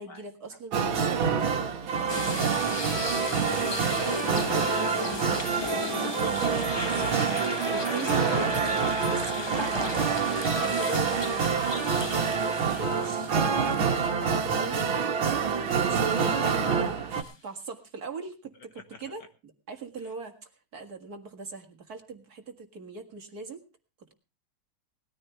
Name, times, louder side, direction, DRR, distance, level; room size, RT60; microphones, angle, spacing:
voice 1, 0.0-1.3 1.8-3.0 4.1-5.6 5.8-6.4 7.5-10.1 10.5-12.0 12.6-23.6, right 4 dB, 50° right, 5 dB, 2.2 m, -41 dB
sound 1, 0.7-17.2, right 6 dB, 70° right, 2.3 m, -27 dB
sound 2, 2.1-14.3 14.7-14.8 17.2-17.3, left 3 dB, 20° left, 0.6 m, -35 dB
voice 2, 4.2-4.6 5.3-5.7 6.2-7.7 9.3-9.5 16.5-16.6, left 4 dB, 55° left, 7 dB, 2.4 m, -45 dB
19.5 x 14.0 x 3.3 m, 0.31 s
omnidirectional pair, 2.2 m